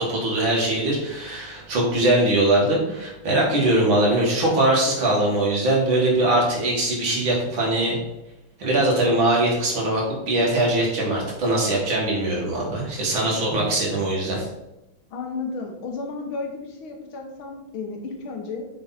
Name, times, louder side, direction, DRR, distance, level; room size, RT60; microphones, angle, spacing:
voice 1, 0.0-8.0 8.6-14.4, right 1 dB, 75° right, -3 dB, 2.9 m, -21 dB
voice 2, 15.1-18.7, left 4 dB, 85° left, 3 dB, 2.0 m, -33 dB
6.8 x 5.6 x 4.2 m, 0.94 s
omnidirectional pair, 2.2 m